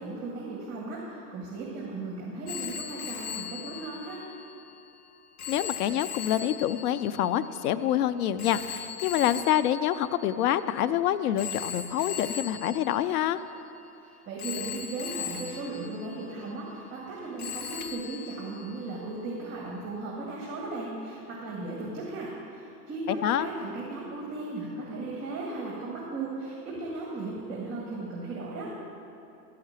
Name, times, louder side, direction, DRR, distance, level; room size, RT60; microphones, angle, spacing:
voice 1, 0.0-4.2 14.0-28.7, right 3 dB, 30° right, -4 dB, 2.1 m, -36 dB
Telephone, 2.5-10.8 11.4-13.9 14.4-17.1 17.4-19.1, left 8 dB, 25° left, 0.4 m, -40 dB
voice 2, 5.5-13.4 23.2-23.5, left 11 dB, 70° left, 12 dB, 0.6 m, -26 dB
12.5 x 5.8 x 7.4 m, 2.7 s
hypercardioid pair, 140°, 47 cm